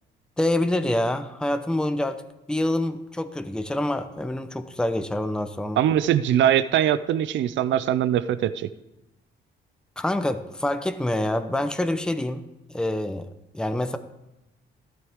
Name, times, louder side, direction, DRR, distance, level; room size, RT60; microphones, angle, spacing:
voice 1, 0.4-2.2 2.5-5.8 10.0-12.4 12.7-13.3 13.5-14.0, left 1 dB, 5° left, 9 dB, 0.7 m, -26 dB
voice 2, 5.8-8.7, right 10 dB, 70° right, 14 dB, 0.5 m, -22 dB
13.0 x 12.0 x 3.6 m, 0.93 s
cardioid pair, 90°, 20 cm